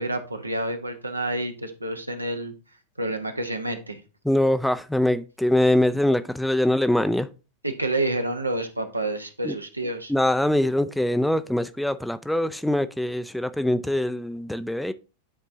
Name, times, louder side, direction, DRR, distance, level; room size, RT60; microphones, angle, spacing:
voice 1, 0.0-2.5 3.0-4.0 7.6-10.1, right 1 dB, 85° right, 0.9 m, -29 dB
voice 2, 4.2-7.3 9.4-9.6 10.1-14.9, left 1 dB, 5° left, 0.4 m, -23 dB
11.0 x 4.4 x 2.7 m
figure-of-eight pair, 90°, 0 cm